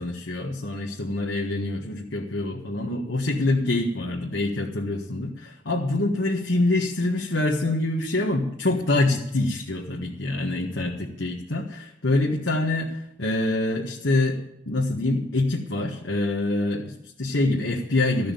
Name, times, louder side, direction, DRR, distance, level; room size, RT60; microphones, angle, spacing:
voice 1, 0.0-14.4 14.7-18.3, left 2 dB, 85° left, -1 dB, 1.5 m, -25 dB
14.0 x 6.3 x 9.2 m, 0.79 s
head